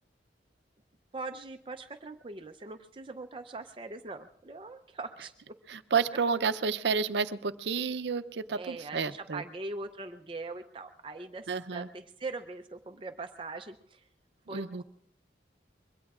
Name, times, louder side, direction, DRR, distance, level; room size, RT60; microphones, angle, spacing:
voice 1, 1.1-5.3 8.5-14.1 14.5-14.8, right 3 dB, 30° right, 6 dB, 0.5 m, -41 dB
voice 2, 5.7-9.4 11.5-11.9 14.5-14.8, right 5 dB, 75° right, 11 dB, 0.6 m, -30 dB
25.0 x 22.5 x 2.4 m, 0.72 s
head